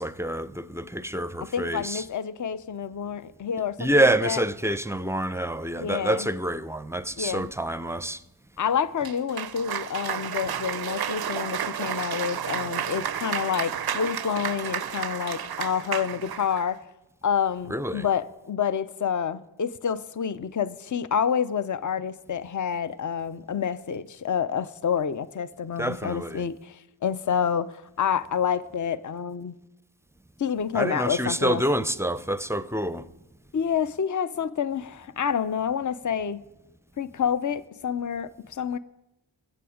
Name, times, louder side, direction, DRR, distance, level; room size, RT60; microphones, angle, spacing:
voice 1, 0.0-2.0 3.8-8.2 17.7-18.0 25.8-26.4 30.7-33.1, right 1 dB, 5° right, 0.5 m, -27 dB
voice 2, 1.4-4.4 5.8-6.3 7.2-7.5 8.6-16.8 17.2-29.5 30.4-31.6 33.5-36.4 37.0-38.8, left 7 dB, 40° left, 0.6 m, -28 dB
Cheering / Applause, 9.0-16.7, right 8 dB, 55° right, 0.5 m, -31 dB
22.0 x 7.8 x 5.0 m
wide cardioid pair, 45°, 47 cm